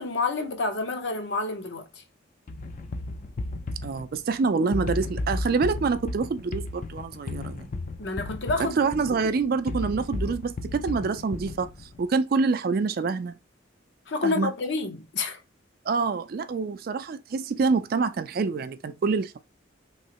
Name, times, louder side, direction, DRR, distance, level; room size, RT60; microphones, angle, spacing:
voice 1, 0.0-2.0 8.0-9.2 14.1-15.4, left 3 dB, 65° left, 0.7 m, -29 dB
sound 1, 2.5-12.0, left 2 dB, 40° left, 0.4 m, -34 dB
voice 2, 3.8-7.7 8.6-11.7 12.0-13.3 14.2-14.5 15.9-19.4, right 4 dB, 50° right, 0.3 m, -26 dB
3.1 x 2.8 x 2.8 m
head